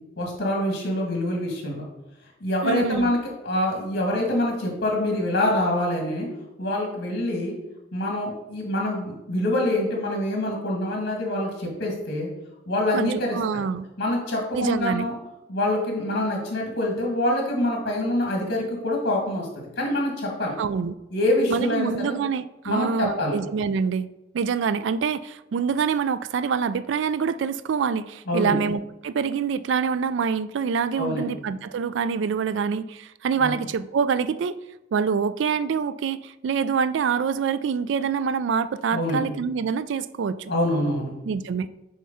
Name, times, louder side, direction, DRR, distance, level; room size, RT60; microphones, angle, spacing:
voice 1, 0.2-1.8 2.4-3.2 3.4-6.3 6.6-7.5 7.9-12.3 12.7-13.6 14.0-15.1 15.5-20.5 21.1-22.2 22.7-23.4 28.3-28.6 31.0-31.3 33.4-33.5 38.9-39.2 40.5-41.1, left 1 dB, 55° left, -1 dB, 1.9 m, -25 dB
voice 2, 2.6-3.1 12.9-13.9 14.6-15.1 20.6-21.0 21.5-24.1 24.3-34.6 34.9-40.5 41.2-41.7, right 6 dB, 65° right, 14 dB, 0.3 m, -26 dB
6.4 x 4.4 x 5.5 m, 0.94 s
head